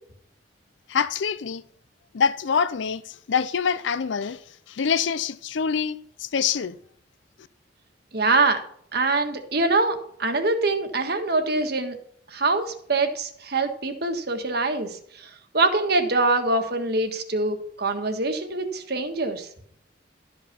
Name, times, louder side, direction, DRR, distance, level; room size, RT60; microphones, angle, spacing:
voice 1, 0.9-1.6 2.1-3.0 3.3-4.4 4.7-6.7, left 6 dB, 75° left, 0.5 m, -25 dB
voice 2, 8.1-8.6 8.9-12.0 12.3-19.5, right 3 dB, 60° right, 1.5 m, -24 dB
12.5 x 5.6 x 5.9 m
head